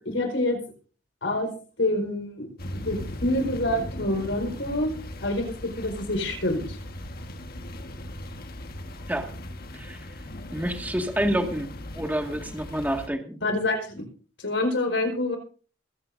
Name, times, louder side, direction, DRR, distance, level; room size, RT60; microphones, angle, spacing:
voice 1, 0.0-0.6 1.2-4.9 5.2-6.8 13.4-14.1 14.4-15.4, left 1 dB, 75° left, 5 dB, 4.8 m, -27 dB
sound 1, 2.6-13.1, left 1 dB, 55° left, 1.5 m, -38 dB
voice 2, 10.5-13.4, right 1 dB, 10° right, 3 dB, 1.9 m, -28 dB
21.5 x 16.0 x 2.7 m, 0.40 s
head